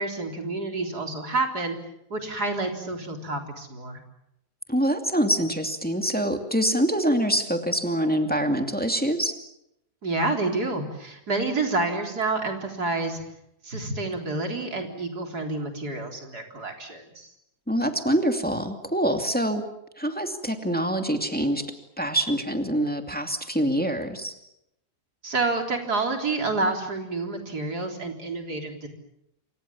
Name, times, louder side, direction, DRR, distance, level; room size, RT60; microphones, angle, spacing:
voice 1, 0.0-1.8 2.1-4.0 10.0-13.2 13.6-17.3 25.2-28.9, right 3 dB, 70° right, 3 dB, 4.4 m, -28 dB
voice 2, 4.7-9.3 17.7-19.6 20.0-24.3, right 1 dB, 5° left, 5 dB, 2.4 m, -25 dB
28.0 x 25.5 x 7.2 m, 0.82 s
omnidirectional pair, 1.7 m